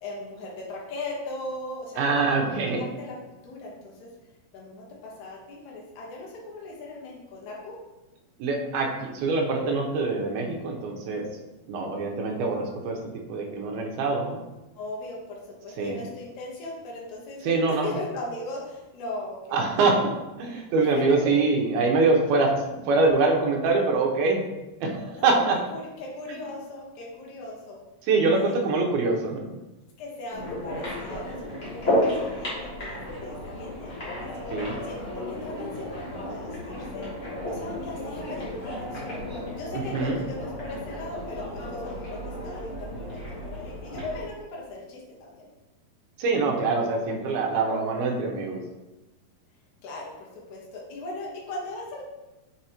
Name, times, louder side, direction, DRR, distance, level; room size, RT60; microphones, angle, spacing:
voice 1, 0.0-4.1 4.5-7.8 14.8-19.7 21.0-21.4 25.1-25.3 25.7-27.8 28.4-28.6 30.0-31.4 31.7-34.1 34.8-39.2 39.6-45.5 49.8-52.0, left 2 dB, 60° left, -3 dB, 2.3 m, -38 dB
voice 2, 2.0-2.8 8.4-11.2 11.7-13.0 13.3-14.4 15.8-16.0 17.4-17.9 19.5-20.0 20.4-24.4 24.8-25.6 28.1-29.5 34.5-34.8 39.7-40.2 46.2-48.6, right 3 dB, 90° right, 0 dB, 2.8 m, -24 dB
sound 1, 30.3-44.3, left 1 dB, 80° left, 0.5 m, -33 dB
6.7 x 4.9 x 3.0 m, 1.1 s
omnidirectional pair, 4.3 m